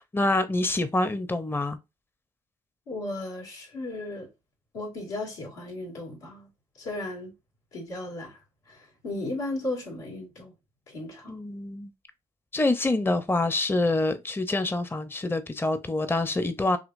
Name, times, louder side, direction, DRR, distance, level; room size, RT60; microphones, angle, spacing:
voice 1, 0.0-1.8 9.1-9.2 11.3-11.9 12.5-16.8, left 2 dB, 15° left, 0.6 m, -26 dB
voice 2, 2.9-4.3 4.7-6.5 6.8-7.3 7.7-8.4 8.7-10.5 10.9-11.4, left 2 dB, 90° left, 2.2 m, -35 dB
5.0 x 2.9 x 2.5 m
hypercardioid pair, 45°, 17 cm